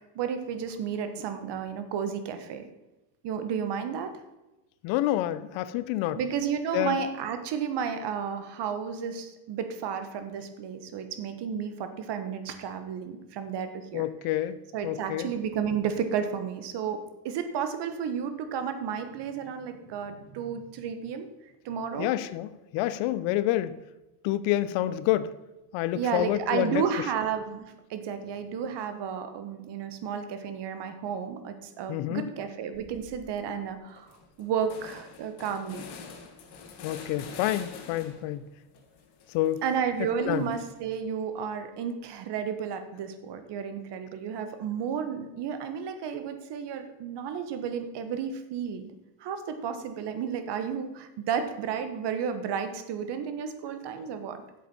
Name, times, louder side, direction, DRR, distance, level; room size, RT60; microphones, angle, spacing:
voice 1, 0.1-2.7 3.2-4.2 6.1-14.1 14.7-21.3 21.6-22.1 25.9-34.1 34.4-35.8 39.6-48.9 49.2-54.4, right 7 dB, 60° right, 9 dB, 1.4 m, -32 dB
voice 2, 4.8-6.2 6.7-7.0 13.9-14.6 14.8-15.3 22.0-23.8 24.2-25.3 25.7-26.8 31.9-32.3 36.8-38.5 39.3-39.6 40.3-40.5, left 14 dB, 70° left, 14 dB, 0.8 m, -28 dB
sound 1, 32.7-33.2 33.6-33.7 34.0-38.4 38.7-40.9, left 5 dB, 55° left, 2.0 m, -46 dB
8.2 x 7.5 x 5.5 m, 1.0 s
supercardioid pair, 90°, 47 cm